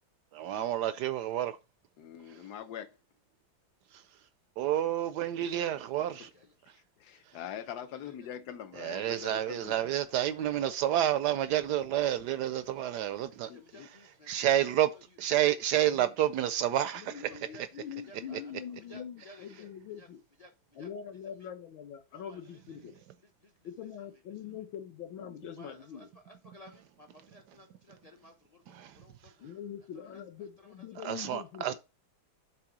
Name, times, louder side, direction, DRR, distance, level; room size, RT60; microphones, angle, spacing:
voice 1, 0.3-1.6 4.6-6.3 8.8-13.5 13.8-14.0 14.3-14.9 15.2-17.3 28.7-28.9 31.0-31.7, right 12 dB, 75° right, 1.0 m, -29 dB
voice 2, 2.0-3.0 5.4-5.5 7.0-9.9 13.5-13.9, left 9 dB, 65° left, 1.1 m, -43 dB
voice 3, 9.3-10.3 12.9-13.2 13.5-14.6 17.3-17.6 18.1-18.4 18.9-19.7 20.0-20.1 20.4-20.5 20.8-20.9 22.1-22.4 23.4-23.5 25.6-26.0 26.4-29.1, left 1 dB, 40° left, 0.5 m, -55 dB
voice 4, 16.9-20.2 20.7-22.9 23.6-26.1 29.4-31.7, left 8 dB, 80° left, 2.0 m, -43 dB
7.6 x 3.5 x 6.1 m
omnidirectional pair, 2.1 m